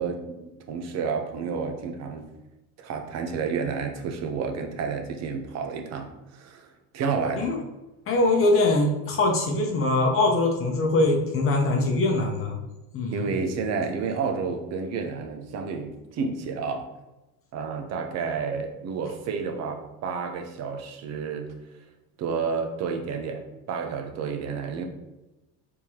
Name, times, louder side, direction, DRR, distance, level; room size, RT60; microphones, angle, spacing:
voice 1, 0.0-2.2 2.8-7.5 13.1-16.8 17.5-21.5 22.2-24.8, right 5 dB, 50° right, 5 dB, 0.8 m, -30 dB
voice 2, 8.1-12.6 12.9-13.3, left 2 dB, 40° left, 1 dB, 0.8 m, -22 dB
4.5 x 3.6 x 2.9 m, 1.0 s
supercardioid pair, 115°, 34 cm